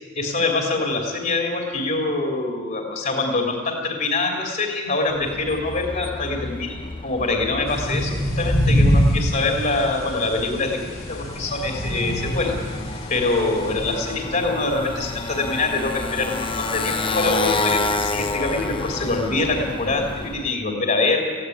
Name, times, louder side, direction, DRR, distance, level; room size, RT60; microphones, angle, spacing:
voice 1, 0.1-12.6 13.1-21.2, left 3 dB, 40° left, 1 dB, 3.1 m, -24 dB
Motorcycle, 5.1-20.5, left 3 dB, 25° left, 0.8 m, -30 dB
sound 1, 7.7-14.2, equal, 80° left, 6.3 m, -24 dB
17.5 x 16.0 x 10.0 m, 1.5 s
head